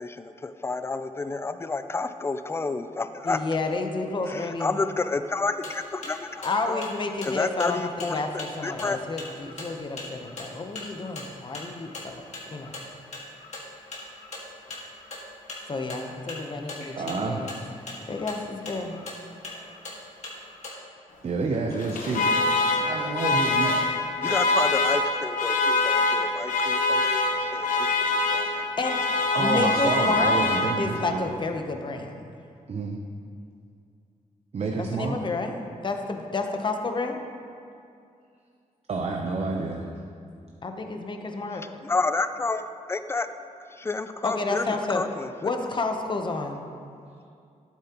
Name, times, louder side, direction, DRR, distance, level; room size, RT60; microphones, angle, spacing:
voice 1, 0.0-3.4 4.3-6.9 7.2-9.0 24.2-28.6 41.5-43.3 43.7-45.3 45.6-45.7, left 3 dB, 20° left, 10 dB, 0.4 m, -30 dB
voice 2, 3.2-4.8 6.4-12.2 12.5-12.7 15.7-17.5 18.1-19.0 28.8-29.0 29.4-30.3 30.8-32.3 34.8-35.5 35.8-37.2 40.6-41.8 44.2-45.0 45.4-46.7, left 3 dB, 35° left, 4 dB, 0.8 m, -30 dB
sound 1, 5.5-20.7, left 2 dB, 60° left, 1.9 m, -40 dB
voice 3, 16.9-17.4 21.2-22.3 22.6-23.8 29.3-31.3 32.7-33.0 34.5-35.2 38.9-39.8, right 3 dB, 50° right, 1 dB, 0.7 m, -29 dB
Alarm, 21.7-31.1, left 2 dB, 80° left, 1.0 m, -24 dB
12.0 x 8.4 x 3.0 m, 2.4 s
cardioid pair, 100°, 13 cm